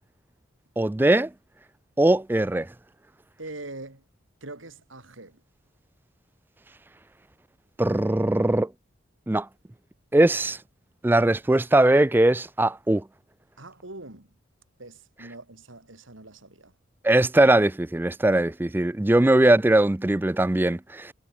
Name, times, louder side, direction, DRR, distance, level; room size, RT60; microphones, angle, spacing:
voice 1, 0.8-1.3 2.0-2.7 7.8-8.7 9.3-9.5 10.1-10.6 11.0-13.0 17.0-21.1, right 1 dB, 10° right, 0.3 m, -20 dB
voice 2, 3.4-4.0 4.4-5.4 13.6-14.3 14.8-16.7, right 2 dB, 80° right, 4.0 m, -42 dB
head